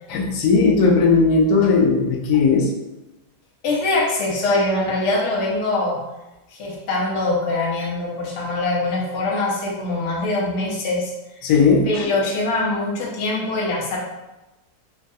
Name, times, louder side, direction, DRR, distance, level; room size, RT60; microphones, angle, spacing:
voice 1, 0.1-2.7 11.4-12.1, left 4 dB, 85° left, 0 dB, 1.2 m, -17 dB
voice 2, 3.6-6.0 6.5-11.1 11.9-14.0, left 2 dB, 60° left, -4 dB, 0.9 m, -23 dB
3.2 x 2.3 x 2.6 m, 1.0 s
omnidirectional pair, 1.7 m